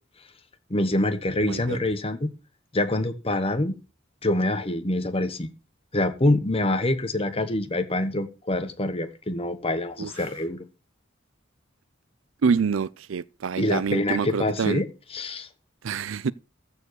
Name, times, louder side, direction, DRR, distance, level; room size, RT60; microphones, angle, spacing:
voice 1, 0.7-2.3 2.7-3.8 4.2-5.5 5.9-10.6 13.6-14.9 15.1-15.5, left 1 dB, 30° left, 1.2 m, -25 dB
voice 2, 1.4-1.8 10.0-10.1 12.4-14.8 15.8-16.3, right 5 dB, 75° right, 0.5 m, -26 dB
14.0 x 4.8 x 6.4 m
head